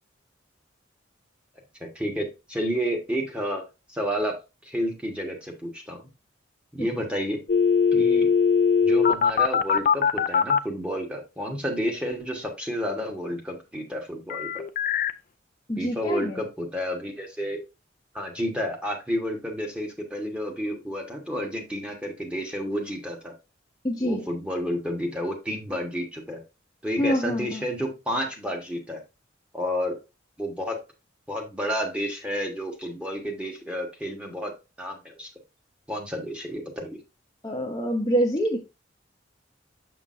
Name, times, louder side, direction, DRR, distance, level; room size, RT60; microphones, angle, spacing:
voice 1, 1.9-3.6 3.9-4.4 4.6-6.0 6.7-7.4 7.9-8.3 8.8-14.6 15.8-17.6 18.1-23.3 24.0-26.4 26.8-29.0 29.5-30.0 30.4-30.8 31.3-34.5 34.8-35.3 35.9-37.0, equal, 5° right, 1 dB, 1.3 m, -30 dB
sound 1, 7.5-10.6 14.3-15.1, left 6 dB, 45° left, 0.4 m, -21 dB
voice 2, 15.7-16.4 23.8-24.2 27.0-27.6 37.4-38.6, equal, 20° left, 0 dB, 0.7 m, -26 dB
6.5 x 6.0 x 2.5 m, 0.27 s
head